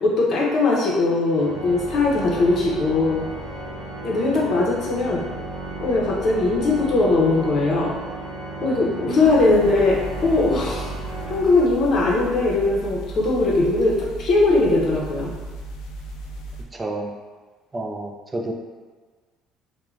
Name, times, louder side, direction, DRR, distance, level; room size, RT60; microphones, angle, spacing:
voice 1, 0.0-3.3 4.0-5.2 5.8-8.0 8.6-10.9 11.3-15.3, left 2 dB, 50° left, -2 dB, 0.6 m, -20 dB
Organ, 1.3-12.1, right 1 dB, 85° right, 0.6 m, -34 dB
sound 1, 9.2-16.6, right 1 dB, 85° left, 0.4 m, -36 dB
voice 2, 16.7-17.1 17.7-18.5, right 2 dB, 20° right, 1 dB, 0.3 m, -29 dB
2.3 x 2.2 x 3.1 m, 1.4 s
cardioid pair, 120°, 0 cm